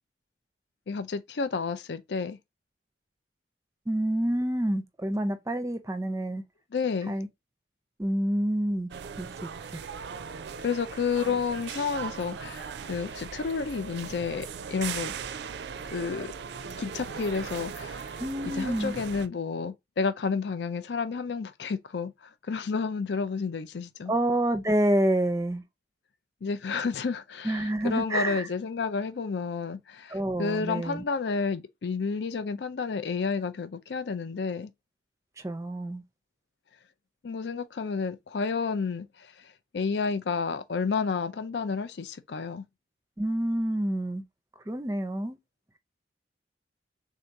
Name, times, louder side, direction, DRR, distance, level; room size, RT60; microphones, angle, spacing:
voice 1, 0.9-2.4 6.7-7.2 10.6-15.1 15.9-16.3 16.8-18.2 18.4-24.1 26.4-34.7 37.2-42.6, left 5 dB, 70° left, 0.5 m, -31 dB
voice 2, 3.9-6.4 7.1-7.3 8.0-8.9 9.2-9.8 18.2-18.9 24.1-25.6 27.4-28.5 30.1-31.0 35.4-36.0 43.2-44.2 44.7-45.4, right 1 dB, 15° right, 0.5 m, -28 dB
sound 1, 8.9-19.3, right 6 dB, 70° right, 0.4 m, -39 dB
3.6 x 2.7 x 4.5 m
head